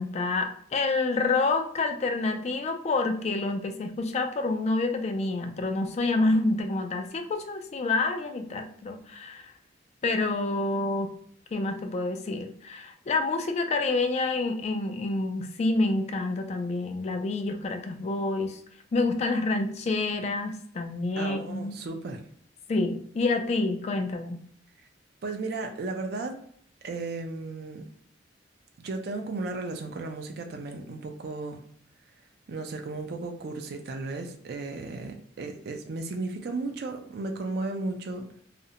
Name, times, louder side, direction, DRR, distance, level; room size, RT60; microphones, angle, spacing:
voice 1, 0.0-9.5 10.0-11.1 11.5-18.6 18.9-21.8 22.7-24.4, left 3 dB, 35° left, 0.3 m, -28 dB
voice 2, 21.2-22.2 25.2-26.4 26.8-27.8 28.8-31.6 32.5-38.4, right 3 dB, 55° right, 0.4 m, -34 dB
2.5 x 2.0 x 2.7 m
head